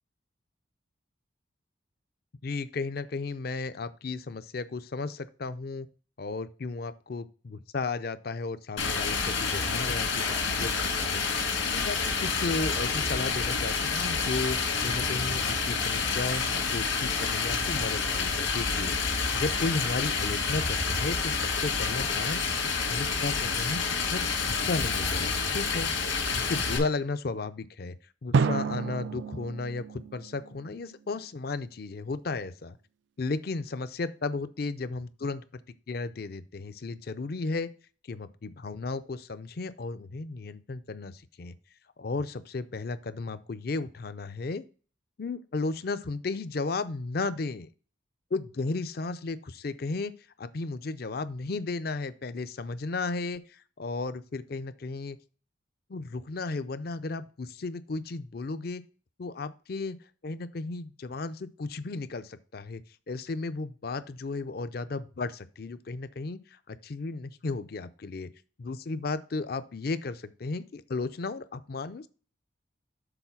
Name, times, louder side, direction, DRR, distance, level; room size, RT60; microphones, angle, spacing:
voice 1, 2.4-5.9 6.2-11.5 11.7-14.6 14.8-16.5 16.7-18.9 19.3-22.4 22.9-25.9 26.3-28.0 28.2-32.8 33.2-35.6 35.9-37.7 38.1-41.5 42.0-44.6 45.2-47.7 48.3-50.1 50.4-55.2 55.9-58.8 59.2-60.0 60.2-62.8 63.1-68.3 68.6-72.1, left 3 dB, 50° left, 13 dB, 0.5 m, -34 dB
Stream, 8.8-26.8, left 5 dB, 75° left, 2.0 m, -28 dB
Drum, 28.3-31.0, right 5 dB, 65° right, 0.3 m, -30 dB
7.0 x 3.9 x 5.7 m, 0.39 s
head